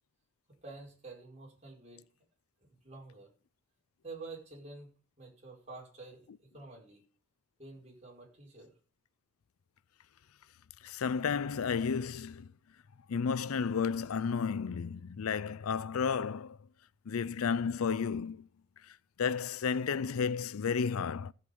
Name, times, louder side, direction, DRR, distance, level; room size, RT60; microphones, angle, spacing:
voice 1, 0.5-2.2 2.7-3.3 4.0-4.9 5.2-7.0 7.6-8.7, right 3 dB, 30° right, 5.2 m, -49 dB
voice 2, 10.8-12.5 13.1-16.6 17.1-18.5 19.2-21.3, left 6 dB, 90° left, 0.5 m, -32 dB
15.0 x 7.9 x 5.4 m
head